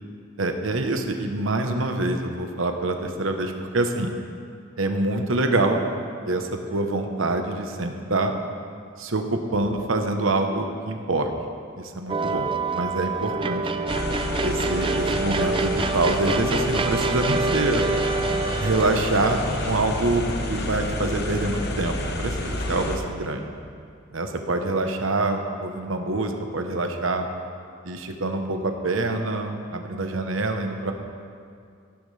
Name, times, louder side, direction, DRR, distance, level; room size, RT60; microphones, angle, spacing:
voice 1, 0.4-4.1 4.8-5.8 6.3-8.3 9.0-11.3 11.8-13.6 14.4-17.8 18.6-19.4 19.7-23.4 24.1-27.2 27.8-30.9, right 2 dB, 85° right, 5 dB, 1.0 m, -25 dB
sound 1, 12.1-21.3, right 3 dB, 25° right, 0.5 m, -27 dB
sound 2, 13.9-23.0, left 1 dB, 55° left, 1.1 m, -30 dB
15.0 x 12.0 x 3.4 m, 2.2 s
head